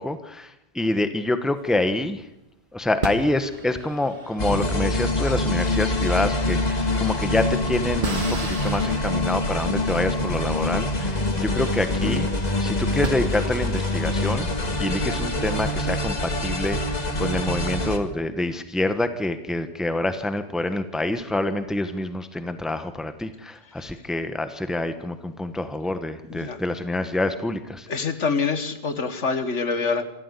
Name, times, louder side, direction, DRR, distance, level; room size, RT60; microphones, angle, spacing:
voice 1, 0.0-2.2 2.7-12.3 12.6-14.5 14.8-27.9, left 1 dB, ahead, 9 dB, 1.2 m, -26 dB
sound 1, 1.6-2.3 3.0-12.2 12.6-12.7 13.0-16.1, right 3 dB, 45° right, 1.7 m, -38 dB
sound 2, 4.4-18.0, left 1 dB, 35° left, 2.0 m, -25 dB
voice 2, 27.9-30.0, left 4 dB, 80° left, 10 dB, 1.9 m, -26 dB
26.5 x 13.5 x 8.3 m, 0.87 s
omnidirectional pair, 1.2 m